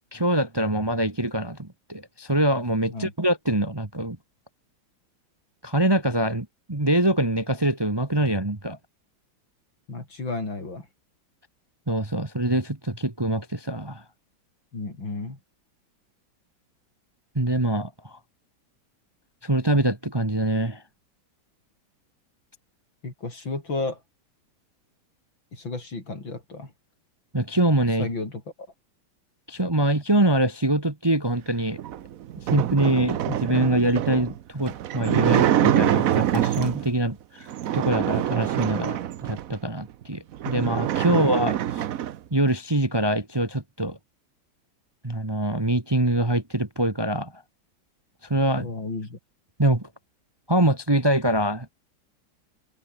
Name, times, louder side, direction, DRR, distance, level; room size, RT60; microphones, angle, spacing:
voice 1, 0.1-4.2 5.6-8.8 11.9-14.0 17.3-18.2 19.4-20.8 27.3-28.1 29.5-31.8 32.5-37.5 37.7-41.9 42.3-44.0 45.0-47.3 48.3-48.7 49.6-49.9 50.5-51.7, right 1 dB, 15° right, 1.4 m, -24 dB
voice 2, 9.9-10.9 14.7-15.4 23.0-24.0 25.5-26.7 28.0-28.4 48.6-49.2, left 3 dB, 70° left, 6.4 m, -32 dB
sound 1, 31.7-36.9 37.5-39.5 40.0-40.1 40.3-42.2, right 11 dB, 60° right, 0.9 m, -25 dB
open air
omnidirectional pair, 2.2 m